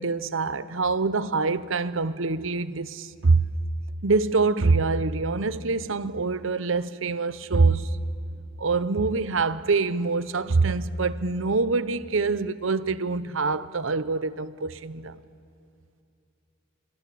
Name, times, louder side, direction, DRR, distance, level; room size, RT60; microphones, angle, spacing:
voice 1, 0.0-3.4 4.0-7.9 8.6-15.2, right 4 dB, 70° right, 0.8 m, -25 dB
26.5 x 23.5 x 8.5 m
head